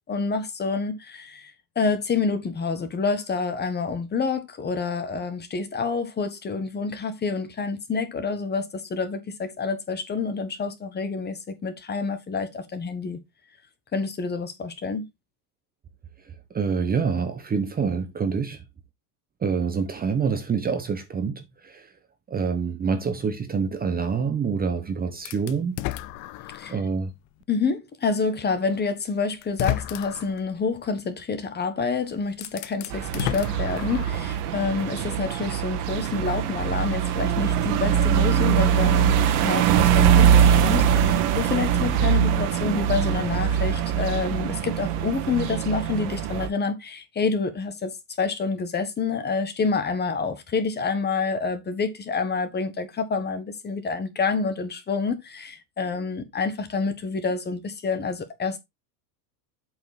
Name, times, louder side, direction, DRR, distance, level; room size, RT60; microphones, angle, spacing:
voice 1, 0.1-13.2 13.9-15.1 26.5-26.7 27.5-58.6, left 4 dB, 20° left, 1.3 m, -28 dB
voice 2, 16.2-18.6 19.4-21.9 22.3-25.9 26.7-27.1, right 5 dB, 20° right, 0.9 m, -26 dB
sound 1, 25.3-26.9 27.4-27.5 28.7-28.8 29.4-30.4 31.8-31.9 32.3-34.3, left 17 dB, 35° left, 0.5 m, -32 dB
sound 2, 32.9-46.5, right 9 dB, 65° right, 1.9 m, -22 dB
8.0 x 4.7 x 4.0 m
supercardioid pair, 120°, 50 cm